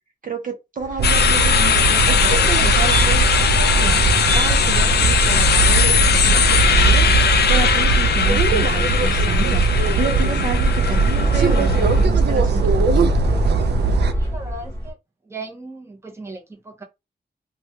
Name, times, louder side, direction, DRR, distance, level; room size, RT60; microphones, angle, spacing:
voice 1, 0.2-3.3 3.8-4.0 4.3-9.7 9.9-13.1, right 4 dB, 55° right, 0.7 m, -30 dB
sound 1, 0.8-14.9, equal, 15° left, 1.0 m, -28 dB
sound 2, 1.0-12.0, left 7 dB, 75° left, 0.4 m, -20 dB
sound 3, 1.0-14.1, right 4 dB, 85° right, 0.4 m, -19 dB
voice 2, 14.1-15.0 15.2-16.8, right 2 dB, 15° right, 0.8 m, -37 dB
3.1 x 2.3 x 2.6 m
wide cardioid pair, 150°, 17 cm